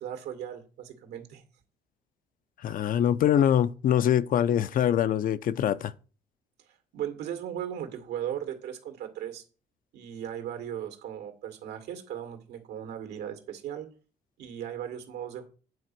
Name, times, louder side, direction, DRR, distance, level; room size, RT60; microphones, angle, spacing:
voice 1, 0.0-1.4 6.9-9.4 9.9-13.9 14.4-15.5, right 10 dB, 80° right, 2.2 m, -37 dB
voice 2, 2.6-5.9, left 10 dB, 55° left, 0.6 m, -24 dB
9.4 x 4.3 x 7.6 m
cardioid pair, 110°, 17 cm